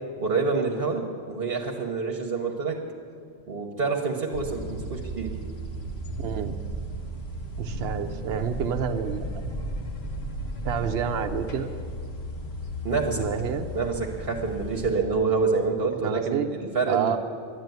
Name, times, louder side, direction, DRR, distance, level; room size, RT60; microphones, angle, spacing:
voice 1, 0.2-2.8 3.5-5.4 12.8-13.2 13.7-17.2, right 4 dB, 65° right, 2 dB, 1.3 m, -27 dB
sound 1, 4.3-14.9, right 1 dB, 85° left, 1.7 m, -35 dB
voice 2, 6.2-6.5 7.6-9.4 10.6-11.7 13.2-13.7 16.0-16.5 16.9-17.2, right 7 dB, 80° right, 6 dB, 0.9 m, -28 dB
12.0 x 9.7 x 9.3 m, 2.4 s
omnidirectional pair, 1.0 m